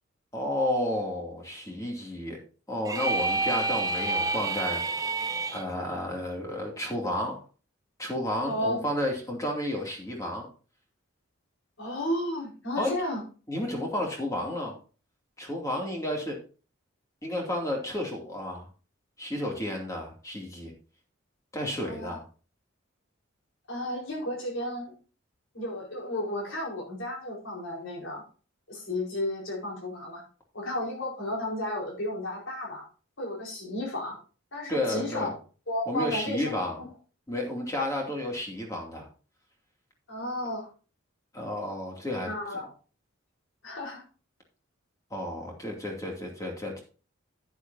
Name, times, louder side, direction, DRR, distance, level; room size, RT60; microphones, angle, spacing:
voice 1, 0.3-2.4 2.7-4.8 5.5-7.4 8.0-10.5 12.8-12.9 13.5-14.7 15.4-16.4 17.2-18.6 19.2-20.7 21.5-22.2 34.7-35.3 35.9-36.8 37.3-39.1 41.3-42.3 45.1-46.8, left 1 dB, 15° left, 0 dB, 2.6 m, -31 dB
sound 1, 2.8-5.6, right 3 dB, 15° right, 0.7 m, -28 dB
voice 2, 8.4-8.8 11.8-13.2 21.8-22.2 23.7-24.9 25.5-28.2 28.7-30.2 30.5-32.8 33.2-34.2 34.5-35.3 35.7-36.5 36.8-36.9 40.1-40.7 42.2-42.7 43.6-44.0, left 1 dB, 70° left, -2 dB, 4.7 m, -33 dB
10.5 x 9.6 x 2.8 m, 0.36 s
head